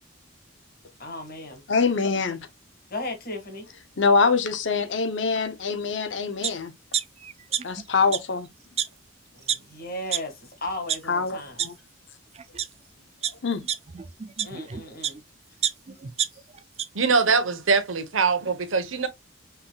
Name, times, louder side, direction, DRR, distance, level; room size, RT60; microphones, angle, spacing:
voice 1, 1.0-1.6 2.9-3.7 9.3-11.6 14.4-15.2, left 1 dB, 50° left, 1.9 m, -35 dB
voice 2, 1.7-2.4 4.0-6.7 7.6-8.5 11.1-11.8 13.4-13.6, left 4 dB, 65° left, 0.7 m, -24 dB
sound 1, 6.4-6.5 6.9-7.8 8.1-8.2 8.8-8.9 9.5-9.6 10.1-10.2 10.7-11.0 11.6-11.7 12.4-12.7 13.2-15.2 15.6-16.8 17.3-17.4, right 9 dB, 30° right, 0.4 m, -28 dB
voice 3, 16.9-19.1, right 4 dB, 80° right, 1.0 m, -22 dB
5.6 x 3.6 x 2.3 m
head